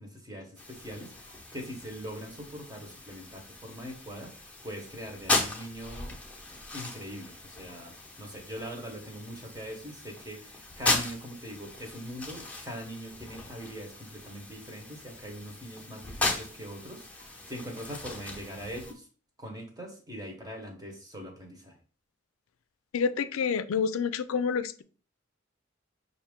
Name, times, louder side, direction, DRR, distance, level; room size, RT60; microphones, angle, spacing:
voice 1, 0.0-6.2 6.7-7.9 8.2-19.1 19.4-21.8, equal, 20° right, 2 dB, 1.0 m, -42 dB
sound 1, 0.6-18.9, left 2 dB, 5° left, 0.8 m, -37 dB
voice 2, 22.9-24.8, left 6 dB, 85° left, 13 dB, 0.4 m, -28 dB
5.5 x 2.6 x 3.6 m, 0.38 s
head